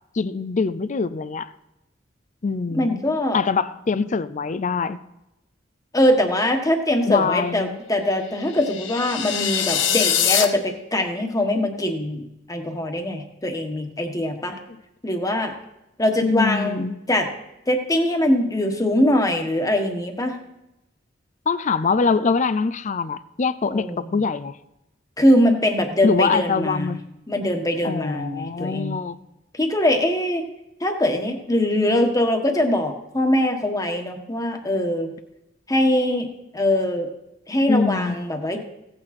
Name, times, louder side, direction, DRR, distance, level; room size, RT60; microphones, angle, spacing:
voice 1, 0.1-1.5 2.4-3.0 3.3-5.0 7.1-7.8 16.2-17.0 21.5-24.6 26.0-27.0 27.8-29.2 37.7-38.2, left 4 dB, 40° left, 15 dB, 0.5 m, -23 dB
voice 2, 2.7-3.4 5.9-14.5 15.0-15.5 16.0-17.3 17.7-20.4 23.7-24.2 25.2-27.0 27.3-29.0 29.5-30.4 30.8-35.1 35.7-36.3 36.5-37.1 37.5-38.6, left 1 dB, 20° left, 4 dB, 1.4 m, -22 dB
sound 1, 8.4-10.4, left 9 dB, 75° left, 1.0 m, -23 dB
16.5 x 8.9 x 4.3 m, 0.90 s
head